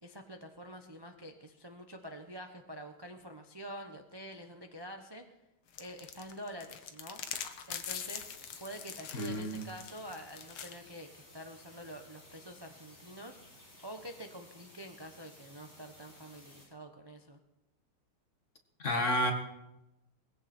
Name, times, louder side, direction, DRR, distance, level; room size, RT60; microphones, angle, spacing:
voice 1, 0.0-5.2 5.8-7.2 7.7-13.4 13.8-17.4, equal, 20° right, 4 dB, 0.7 m, -47 dB
sound 1, 5.7-10.7, left 8 dB, 80° left, 2.0 m, -43 dB
sound 2, 7.8-16.7, left 1 dB, 60° left, 6.4 m, -57 dB
voice 2, 9.1-9.6 18.8-19.3, left 1 dB, 35° left, 4 dB, 1.8 m, -30 dB
19.5 x 16.0 x 4.4 m, 0.95 s
omnidirectional pair, 2.3 m